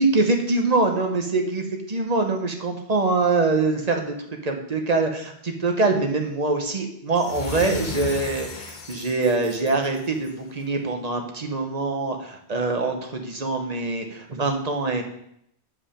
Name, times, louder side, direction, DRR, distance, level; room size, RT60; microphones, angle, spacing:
voice 1, 0.0-4.1 4.4-15.0, right 3 dB, 40° right, 4 dB, 1.0 m, -24 dB
sound 1, 7.1-10.5, left 5 dB, 50° left, 0.8 m, -35 dB
7.6 x 4.9 x 5.0 m, 0.73 s
omnidirectional pair, 1.1 m